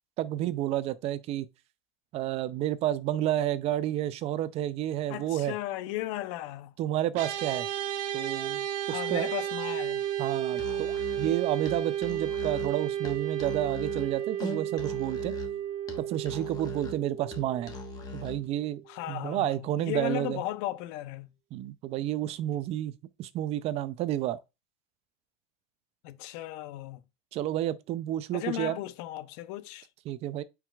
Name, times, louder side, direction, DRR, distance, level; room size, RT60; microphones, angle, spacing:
voice 1, 0.2-1.5 2.1-5.5 6.8-7.7 8.1-9.3 10.2-15.3 16.0-17.7 18.1-20.4 21.5-22.9 23.2-24.4 27.3-28.8 30.1-30.4, right 13 dB, 45° right, 0.4 m, -30 dB
voice 2, 5.1-6.7 8.9-10.0 18.9-21.3 26.0-27.0 28.3-29.9, left 15 dB, 90° left, 0.6 m, -36 dB
sound 1, 7.1-18.6, right 10 dB, 60° right, 1.0 m, -33 dB
Musical instrument, 10.5-18.5, left 4 dB, 25° left, 1.2 m, -42 dB
9.0 x 4.7 x 2.4 m
cardioid pair, 170°, 15 cm